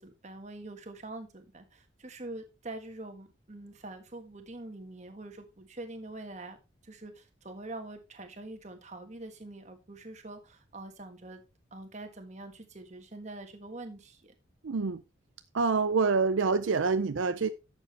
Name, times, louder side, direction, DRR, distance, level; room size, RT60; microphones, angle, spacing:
voice 1, 0.0-6.6 6.8-11.4 11.7-14.3, right 2 dB, 35° right, 1.6 m, -44 dB
voice 2, 14.6-15.0 15.5-17.5, right 4 dB, 75° right, 0.5 m, -26 dB
11.0 x 7.2 x 3.3 m
head